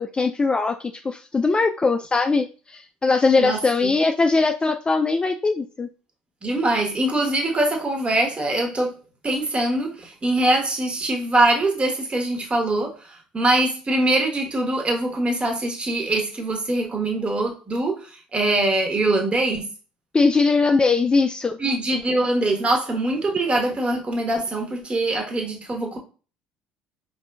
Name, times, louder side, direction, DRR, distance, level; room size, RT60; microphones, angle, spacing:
voice 1, 0.0-5.9 20.1-21.6, left 4 dB, 20° left, 0.3 m, -21 dB
voice 2, 6.4-8.9 9.2-19.7 21.6-26.0, right 2 dB, 25° right, 1.3 m, -23 dB
4.8 x 2.6 x 2.3 m
figure-of-eight pair, 55°, 5 cm